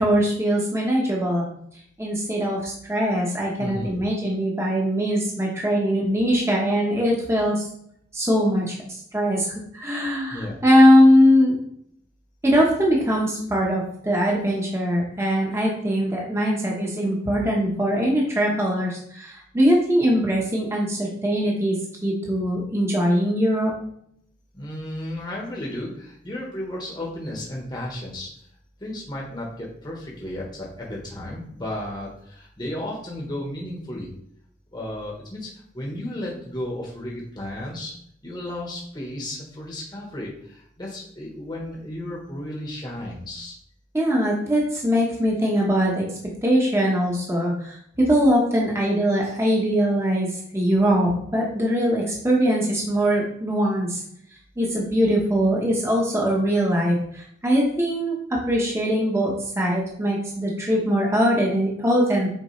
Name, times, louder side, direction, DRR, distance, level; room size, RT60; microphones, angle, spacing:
voice 1, 0.0-1.4 2.0-7.6 8.1-8.8 9.1-9.5 9.7-11.6 12.4-23.7 43.9-46.1 46.4-54.0 54.6-62.3, equal, 15° right, -3 dB, 1.1 m, -21 dB
voice 2, 3.6-4.0 10.3-10.6 24.5-28.3 28.8-34.1 34.7-37.9 38.2-43.5, left 1 dB, 20° left, -3 dB, 1.2 m, -33 dB
6.8 x 4.5 x 3.2 m, 0.70 s
head